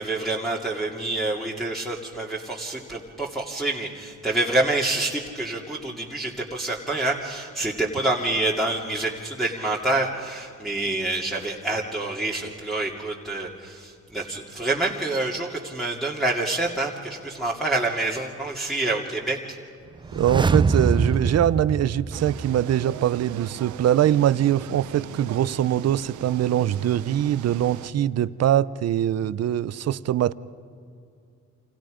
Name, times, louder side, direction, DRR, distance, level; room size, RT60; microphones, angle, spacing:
voice 1, 0.0-19.6, right 2 dB, ahead, 2.5 m, -27 dB
sound 1, 20.0-22.9 23.2-23.3, right 4 dB, 15° right, 0.5 m, -24 dB
voice 2, 20.1-30.3, right 11 dB, 55° right, 0.7 m, -23 dB
sound 2, 22.1-27.9, right 11 dB, 80° right, 1.0 m, -40 dB
29.5 x 26.5 x 5.1 m
cardioid pair, 90°, 30 cm